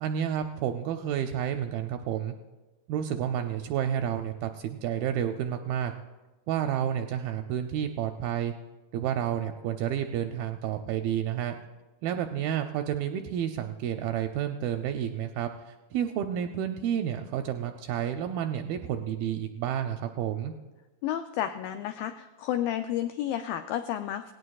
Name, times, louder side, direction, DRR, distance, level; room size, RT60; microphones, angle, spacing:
voice 1, 0.0-2.3 2.9-5.9 6.5-8.5 8.9-11.6 12.0-20.5, right 9 dB, 85° right, 6 dB, 2.2 m, -30 dB
voice 2, 21.0-24.3, left 11 dB, 90° left, 9 dB, 2.0 m, -31 dB
18.0 x 17.5 x 2.3 m, 1.2 s
omnidirectional pair, 4.6 m